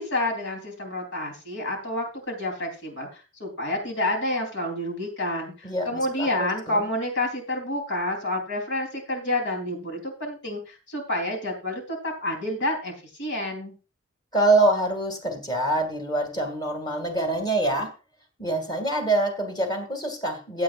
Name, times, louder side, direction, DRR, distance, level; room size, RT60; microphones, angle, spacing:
voice 1, 0.0-12.9 13.2-13.8, left 1 dB, 65° left, 3 dB, 3.6 m, -29 dB
voice 2, 5.6-6.8 14.3-17.9 18.4-20.6, right 2 dB, 20° left, 4 dB, 2.4 m, -25 dB
16.0 x 8.5 x 2.5 m, 0.31 s
head